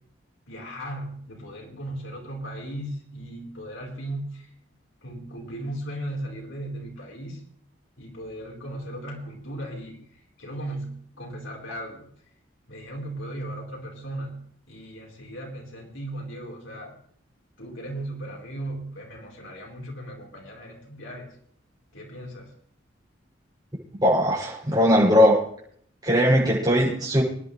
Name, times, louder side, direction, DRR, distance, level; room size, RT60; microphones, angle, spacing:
voice 1, 0.5-4.5 5.0-7.4 8.0-10.0 10.4-12.1 12.7-17.0 17.6-21.3 21.9-22.5, right 1 dB, 90° left, -1 dB, 4.5 m, -37 dB
voice 2, 24.0-25.4 26.0-27.2, equal, 20° right, -5 dB, 7.1 m, -19 dB
26.0 x 10.5 x 3.4 m, 0.62 s
head